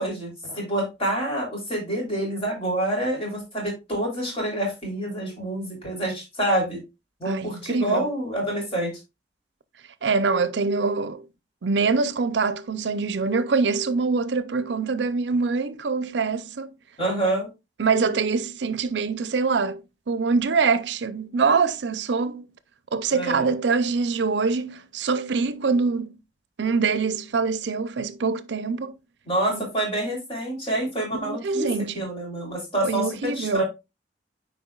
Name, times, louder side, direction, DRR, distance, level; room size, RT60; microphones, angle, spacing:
voice 1, 0.0-6.8 7.2-9.0 17.0-17.5 23.1-23.5 29.3-33.6, right 1 dB, 30° left, 3.3 m, -27 dB
voice 2, 7.3-8.1 10.0-11.3 11.6-16.7 17.8-22.5 22.9-26.1 26.6-29.0 29.5-29.6 31.1-32.1 32.8-33.6, right 4 dB, 70° right, 0.5 m, -24 dB
9.2 x 4.7 x 2.3 m
head